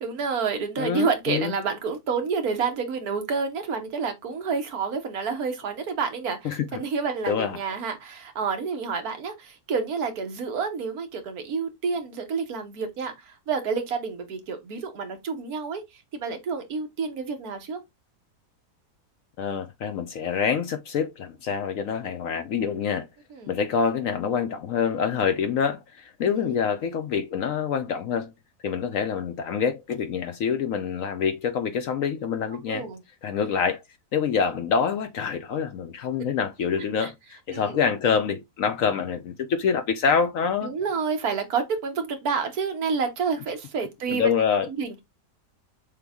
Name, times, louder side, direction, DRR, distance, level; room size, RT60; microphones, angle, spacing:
voice 1, 0.0-15.8 16.1-17.8 23.3-23.5 26.2-26.6 32.7-33.0 36.2-36.3 37.0-37.1 37.5-37.8 40.6-44.3 44.8-45.0, right 5 dB, 65° right, 1.4 m, -29 dB
voice 2, 0.8-1.5 6.4-6.8 7.3-7.6 19.4-23.1 23.5-28.3 28.6-32.9 33.2-33.8 34.1-40.7 44.1-44.7, left 6 dB, 65° left, 0.9 m, -26 dB
6.8 x 2.3 x 3.5 m
omnidirectional pair, 1.7 m